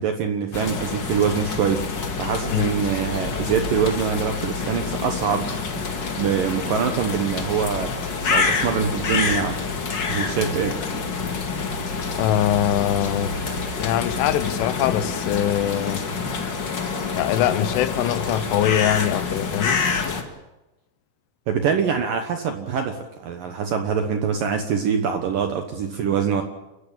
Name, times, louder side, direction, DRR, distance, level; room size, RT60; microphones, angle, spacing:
voice 1, 0.0-1.9 2.2-5.9 6.2-9.6 10.1-10.8 21.5-26.4, right 7 dB, 70° right, 2.2 m, -24 dB
sound 1, 0.5-20.2, left 4 dB, 50° left, 1.3 m, -27 dB
voice 2, 12.2-13.4 13.8-16.0 17.2-19.8, left 12 dB, 80° left, 3.4 m, -23 dB
28.5 x 15.0 x 8.9 m
omnidirectional pair, 5.6 m